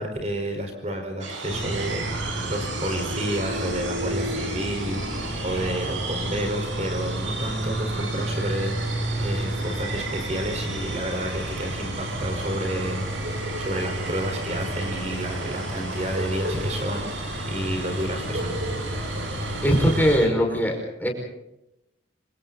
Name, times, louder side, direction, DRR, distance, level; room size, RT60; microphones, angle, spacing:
voice 1, 0.0-18.6, equal, 35° right, 4 dB, 4.5 m, -30 dB
sound 1, 1.2-20.3, right 4 dB, 85° right, 5.8 m, -36 dB
sound 2, 1.5-20.2, right 1 dB, 65° right, 7.7 m, -31 dB
voice 2, 19.6-21.1, equal, 10° left, 1 dB, 5.3 m, -21 dB
27.5 x 26.5 x 4.1 m, 0.87 s
head